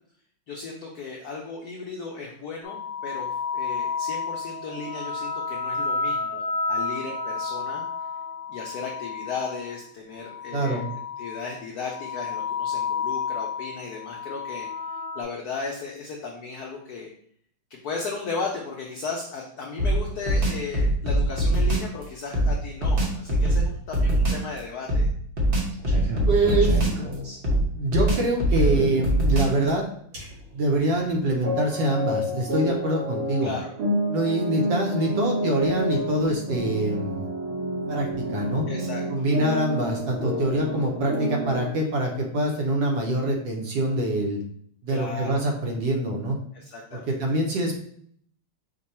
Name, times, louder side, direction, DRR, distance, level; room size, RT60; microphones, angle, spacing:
voice 1, 0.5-7.8 8.5-10.8 11.2-17.1 17.7-25.1 33.4-33.7 38.7-39.2 44.9-45.4 46.5-47.2, left 4 dB, 90° left, 0 dB, 0.8 m, -35 dB
sound 1, 2.6-9.7 10.2-11.5 11.8-15.2, left 5 dB, 40° left, 1.3 m, -31 dB
voice 2, 10.5-10.9 26.3-27.0 27.7-29.9 30.5-33.5 34.1-37.2 37.9-38.6 39.1-44.4 44.8-46.4 46.9-47.8, right 1 dB, 65° right, 1 dB, 1.3 m, -25 dB
sound 2, 19.8-21.9 22.3-24.5 24.9-27.1 27.4-29.7, right 1 dB, 50° right, 0.6 m, -23 dB
sound 3, 25.7-27.6 28.5-29.1 30.1-30.4 30.7-30.9 31.4-41.7, equal, 90° right, 3.0 m, -29 dB
5.2 x 2.2 x 4.2 m, 0.63 s
omnidirectional pair, 2.4 m